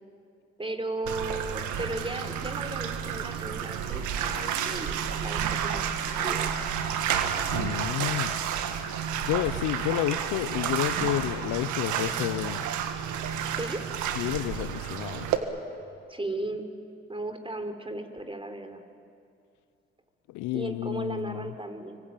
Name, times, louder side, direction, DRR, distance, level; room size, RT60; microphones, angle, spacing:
voice 1, 0.6-6.8 12.1-12.2 13.5-13.8 16.1-16.7 17.1-18.8 20.5-22.0, right 2 dB, 20° right, 3.9 m, -36 dB
Bathtub (filling or washing), 1.1-15.4, right 8 dB, 85° right, 1.8 m, -30 dB
voice 2, 7.5-8.3 9.2-12.6 14.2-15.3 20.3-21.5, left 16 dB, 80° left, 0.6 m, -30 dB
26.5 x 24.0 x 8.9 m
hypercardioid pair, 45°, 29 cm